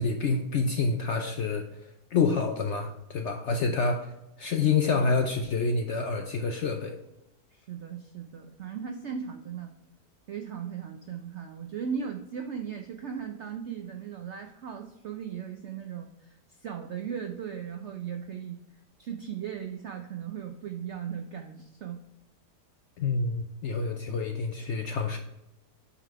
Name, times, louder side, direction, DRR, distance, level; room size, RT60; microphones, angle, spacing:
voice 1, 0.0-1.6 2.1-4.1 4.4-7.0 23.0-25.2, left 4 dB, 65° left, 5 dB, 0.7 m, -27 dB
voice 2, 7.5-9.7 10.3-18.6 19.0-22.0, right 7 dB, 70° right, 4 dB, 0.6 m, -37 dB
8.1 x 3.8 x 4.6 m, 0.90 s
omnidirectional pair, 1.8 m